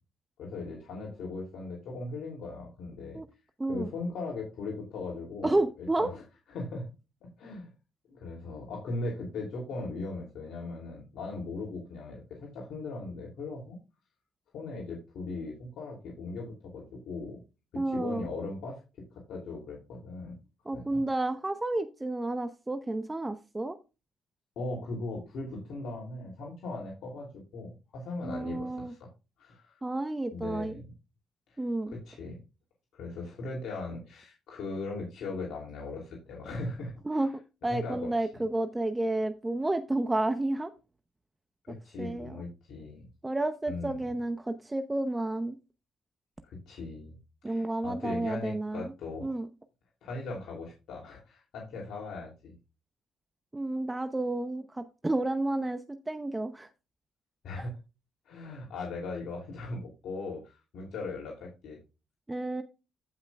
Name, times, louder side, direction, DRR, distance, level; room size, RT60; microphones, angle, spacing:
voice 1, 0.4-3.2 3.7-6.2 6.5-6.9 7.2-7.7 8.1-13.8 14.5-17.4 17.8-18.8 19.1-20.4 20.7-21.0 24.6-29.1 29.4-29.8 30.3-30.8 31.5-32.4 32.9-37.3 37.7-38.4 41.7-43.0 43.7-44.1 46.4-47.1 47.4-49.4 50.0-52.5 57.4-57.7 58.2-61.8, left 3 dB, 75° left, -2 dB, 2.8 m, -39 dB
voice 2, 3.6-3.9 5.4-6.1 17.8-18.3 20.7-23.8 28.2-28.9 29.8-30.7 31.6-31.9 37.1-40.7 42.0-42.4 43.2-45.5 47.4-48.8 49.2-49.5 53.5-56.7 62.3-62.6, right 2 dB, 15° right, 8 dB, 0.8 m, -31 dB
15.0 x 5.7 x 2.3 m, 0.29 s
cardioid pair, 90°, 0 cm